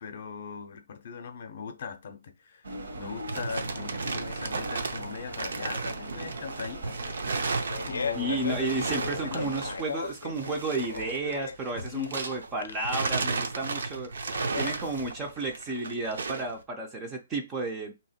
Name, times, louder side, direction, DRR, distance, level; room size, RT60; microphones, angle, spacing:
voice 1, 0.0-2.7 2.9-7.2 7.7-8.4 9.2-9.6 11.9-12.2, left 6 dB, 40° left, 0.6 m, -39 dB
sound 1, 2.6-9.8, right 2 dB, 80° right, 1.4 m, -40 dB
sound 2, 2.9-12.5 12.8-16.5, right 4 dB, 65° right, 0.6 m, -34 dB
Fart, 7.7-15.3, left 5 dB, 85° left, 0.5 m, -38 dB
voice 2, 8.1-14.1 14.5-17.9, right 2 dB, 10° right, 0.4 m, -32 dB
2.9 x 2.8 x 4.2 m
hypercardioid pair, 175°, 0 cm